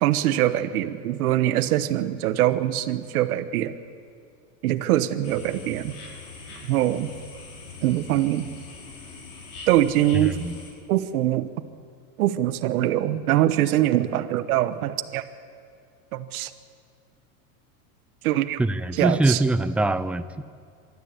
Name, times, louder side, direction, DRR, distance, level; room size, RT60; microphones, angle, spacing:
voice 1, 0.0-3.8 4.6-5.9 6.6-7.1 7.8-8.5 9.7-10.4 10.9-11.5 12.2-15.2 16.1-16.5 18.2-18.6 18.9-19.4, right 13 dB, 75° right, 10 dB, 1.2 m, -23 dB
sound 1, 5.2-10.7, left 4 dB, 80° left, 6.0 m, -42 dB
voice 2, 10.1-10.6 18.6-20.4, right 2 dB, 5° right, 12 dB, 0.4 m, -23 dB
23.5 x 13.0 x 8.6 m, 2.2 s
supercardioid pair, 115°, 44 cm